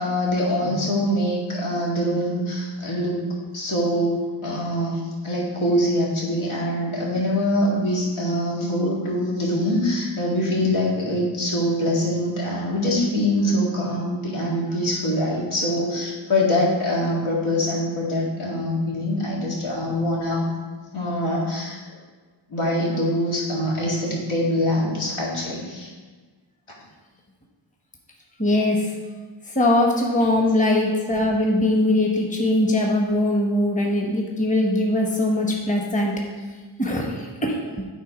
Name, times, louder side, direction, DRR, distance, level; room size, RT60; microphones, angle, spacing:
voice 1, 0.0-3.2 3.5-20.5 20.9-22.0 22.5-25.9, left 1 dB, 80° left, -5 dB, 2.2 m, -24 dB
voice 2, 28.4-28.9 29.5-36.1 36.8-37.8, left 1 dB, 15° left, 0 dB, 1.1 m, -21 dB
9.2 x 3.9 x 5.0 m, 1.4 s
wide cardioid pair, 90°, 48 cm